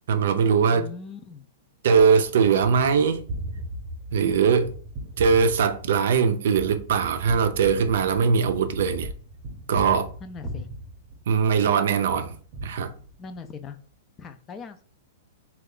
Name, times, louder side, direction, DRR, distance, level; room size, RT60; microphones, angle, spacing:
voice 1, 0.1-0.9 1.8-3.2 4.1-4.8 5.2-9.1 9.7-10.1 11.3-12.3 12.6-12.9, right 6 dB, 70° right, 0.5 m, -21 dB
voice 2, 0.7-1.4 10.2-10.7 13.2-13.8 14.2-14.8, left 5 dB, 20° left, 0.4 m, -40 dB
Gunshot gunfire, 2.3-11.6 12.1-13.5, right 1 dB, 35° right, 0.8 m, -38 dB
3.2 x 2.3 x 3.7 m
hypercardioid pair, 145°, 0 cm